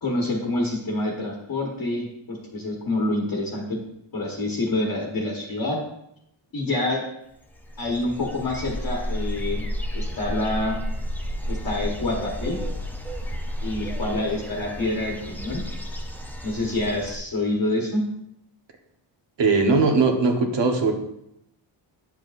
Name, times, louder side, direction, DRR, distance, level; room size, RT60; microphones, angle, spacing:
voice 1, 0.0-3.8 4.1-5.8 6.5-7.0 7.8-9.7 9.9-10.8 11.5-12.6 13.6-15.6 16.4-18.0, left 2 dB, 45° left, -1 dB, 1.3 m, -27 dB
sound 1, 7.5-17.2, equal, 5° left, 0.4 m, -32 dB
voice 2, 19.4-20.9, right 4 dB, 60° right, 3 dB, 1.2 m, -19 dB
9.4 x 7.4 x 2.5 m, 0.79 s
wide cardioid pair, 155°, 49 cm